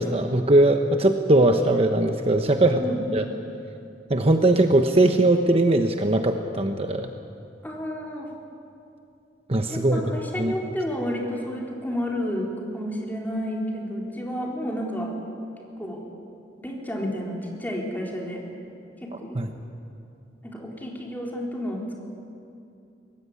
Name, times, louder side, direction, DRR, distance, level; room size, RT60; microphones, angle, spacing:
voice 1, 0.0-2.8 3.1-3.3 4.1-7.1 9.5-10.0 10.4-10.5 19.3-19.5, right 1 dB, 35° right, 5 dB, 1.0 m, -20 dB
voice 2, 2.6-3.0 7.6-8.3 9.7-15.1 15.8-16.0 16.6-18.4 19.0-19.4 20.4-22.0, equal, 10° left, -2 dB, 4.0 m, -31 dB
24.0 x 19.5 x 9.7 m, 2.6 s
head